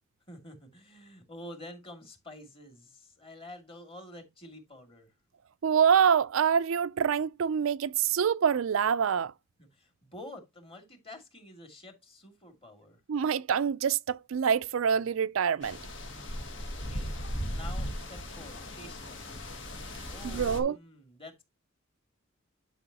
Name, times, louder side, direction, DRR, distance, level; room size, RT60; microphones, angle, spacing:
voice 1, 0.3-5.1 9.6-13.0 16.8-17.1 17.5-19.3 20.0-21.4, left 1 dB, 25° left, 2.3 m, -48 dB
voice 2, 5.6-9.3 13.1-15.8 20.2-20.8, right 7 dB, 75° right, 0.4 m, -26 dB
sound 1, 15.6-20.6, equal, 60° left, 1.8 m, -37 dB
11.0 x 5.4 x 2.8 m
head